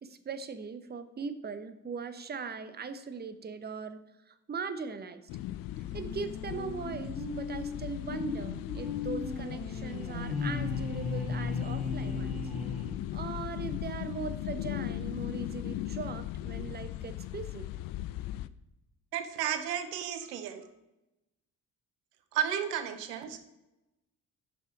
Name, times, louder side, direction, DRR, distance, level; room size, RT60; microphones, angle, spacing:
voice 1, 0.0-5.2 5.9-12.4 13.1-17.7, right 5 dB, 20° right, 11 dB, 0.7 m, -40 dB
sound 1, 5.3-18.5, left 13 dB, 50° left, 0.4 m, -38 dB
sound 2, 5.9-13.4, left 4 dB, ahead, 3.1 m, -37 dB
voice 2, 19.1-20.6 22.3-23.4, right 9 dB, 80° right, 10 dB, 0.7 m, -33 dB
9.0 x 5.6 x 4.8 m, 0.97 s
figure-of-eight pair, 45°, 48 cm